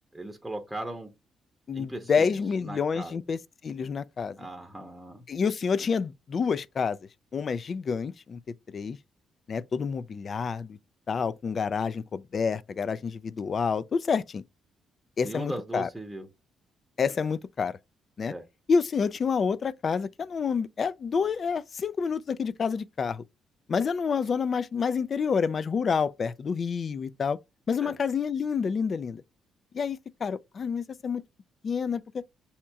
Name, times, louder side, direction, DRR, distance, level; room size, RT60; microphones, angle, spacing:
voice 1, 0.1-1.1 1.7-2.4 2.6-3.2 4.4-5.2 15.2-16.3 18.3-18.4 27.8-27.9, right 1 dB, 5° right, 0.7 m, -38 dB
voice 2, 1.7-4.4 5.3-7.0 7.3-8.4 8.7-9.0 9.5-10.8 11.1-14.4 15.2-15.9 17.0-17.8 18.2-18.3 18.7-23.2 23.7-27.4 27.7-29.2 29.7-31.2 31.6-32.2, left 5 dB, 45° left, 0.3 m, -28 dB
7.4 x 2.8 x 2.3 m
cardioid pair, 90°, 0 cm